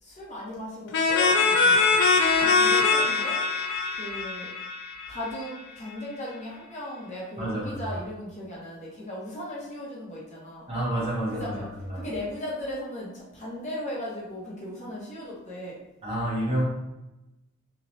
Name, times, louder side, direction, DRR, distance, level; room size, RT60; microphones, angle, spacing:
voice 1, 0.0-1.9 2.4-3.4 4.0-4.5 5.1-10.7 11.3-11.7 11.9-15.8, left 1 dB, 35° left, -6 dB, 0.8 m, -37 dB
sound 1, 0.9-5.5, left 4 dB, 60° left, 0.4 m, -22 dB
voice 2, 7.4-8.0 10.7-12.1 16.0-16.6, right 1 dB, 30° right, -5 dB, 0.8 m, -29 dB
3.0 x 2.2 x 2.6 m, 0.96 s
head